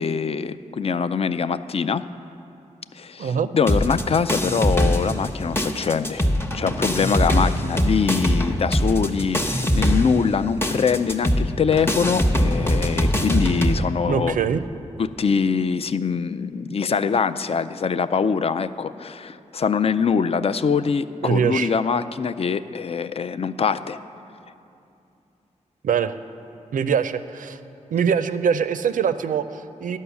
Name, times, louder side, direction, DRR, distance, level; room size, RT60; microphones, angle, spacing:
voice 1, 0.0-2.0 2.9-6.3 6.5-14.4 15.0-24.0, left 6 dB, 50° left, 13 dB, 0.4 m, -23 dB
voice 2, 3.2-3.5 14.1-14.6 21.2-21.7 25.8-26.1 26.7-27.6 27.9-30.0, right 7 dB, 80° right, 11 dB, 0.4 m, -23 dB
sound 1, 3.7-5.3 5.6-13.8, equal, 15° left, 0.8 m, -22 dB
11.5 x 5.4 x 7.0 m, 2.7 s
cardioid pair, 55°, 13 cm